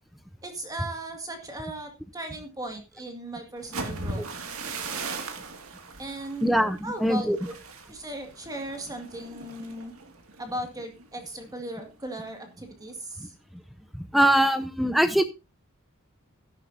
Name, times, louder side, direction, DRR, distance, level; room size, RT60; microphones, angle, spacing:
voice 1, 0.4-4.3 6.0-7.5 7.9-9.9 10.4-13.3, right 1 dB, 15° right, 4 dB, 2.2 m, -37 dB
sound 1, 3.6-11.4 11.8-12.1 12.5-12.9, right 3 dB, 80° right, 2.3 m, -39 dB
voice 2, 6.4-7.4 14.1-15.2, right 1 dB, ahead, 10 dB, 0.6 m, -22 dB
13.5 x 11.5 x 2.7 m, 0.26 s
head